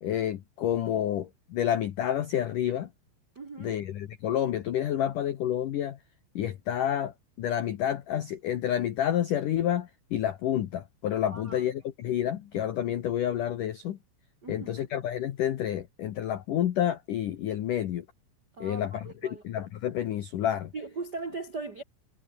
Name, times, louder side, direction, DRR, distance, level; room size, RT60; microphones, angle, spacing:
voice 1, 0.0-2.9 3.6-6.0 6.3-14.0 14.5-18.1 18.6-20.7, left 10 dB, 85° left, 1.8 m, -29 dB
voice 2, 3.3-3.8 11.3-11.6 14.4-14.9 18.6-19.4 20.7-21.8, right 3 dB, 85° right, 0.9 m, -39 dB
omnidirectional pair, 5.8 m